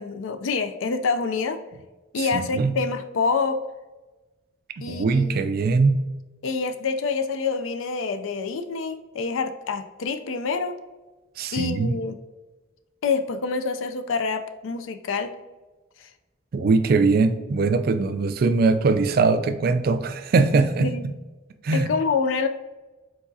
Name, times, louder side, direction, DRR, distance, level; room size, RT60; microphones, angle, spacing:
voice 1, 0.0-1.6 2.1-3.6 4.8-5.4 6.4-10.8 11.5-12.2 13.0-15.3 16.0-16.1 20.8-21.0 21.7-22.5, left 4 dB, 75° left, 8 dB, 0.4 m, -26 dB
voice 2, 2.2-2.8 4.8-6.0 11.4-12.0 16.5-20.9 21.6-21.9, right 4 dB, 45° right, 10 dB, 0.3 m, -21 dB
4.7 x 4.0 x 2.7 m, 1.2 s
head